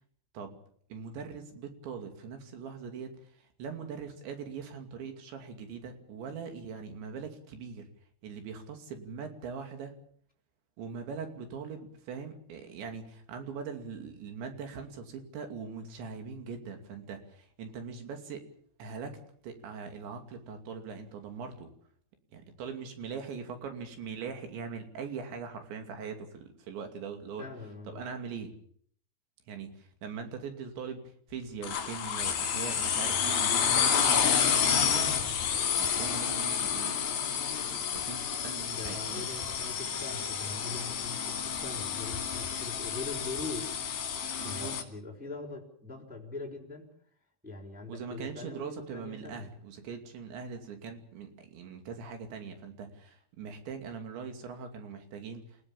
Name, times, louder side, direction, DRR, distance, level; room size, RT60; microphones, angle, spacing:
voice 1, 0.9-7.9 8.2-9.9 10.8-18.5 18.8-19.2 19.4-21.7 22.3-27.4 27.9-28.5 29.5-35.1 35.8-37.0 37.5-39.3 44.4-44.8 47.9-55.7, right 5 dB, 80° right, 5 dB, 4.9 m, -41 dB
voice 2, 27.4-28.0 38.7-44.0 44.4-46.9 47.4-49.5, left 3 dB, ahead, 0 dB, 4.2 m, -42 dB
sound 1, 31.6-44.8, left 7 dB, 60° left, 4.2 m, -30 dB
29.0 x 16.0 x 7.1 m, 0.62 s
omnidirectional pair, 5.1 m